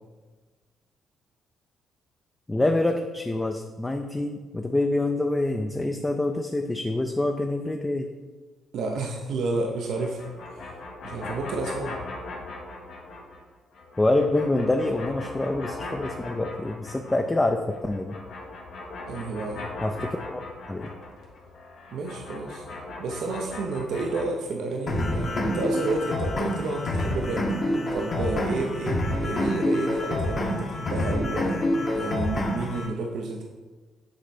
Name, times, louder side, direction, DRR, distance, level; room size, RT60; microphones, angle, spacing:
voice 1, 2.5-8.1 14.0-18.1 19.8-20.4 20.7-20.9, left 2 dB, 15° left, 4 dB, 0.4 m, -26 dB
voice 2, 8.7-10.2 10.5-10.7 11.0-12.0 19.1-19.6 21.9-22.6 23.0-27.5 27.9-31.6 31.9-33.4, right 3 dB, 75° right, 1 dB, 0.7 m, -30 dB
sound 1, 9.8-13.4 13.7-17.4 17.7-24.2, left 2 dB, 75° left, 1.3 m, -39 dB
sound 2, 24.9-32.9, left 1 dB, 45° left, 1.2 m, -27 dB
7.8 x 3.3 x 4.2 m, 1.3 s
cardioid pair, 90°, 0 cm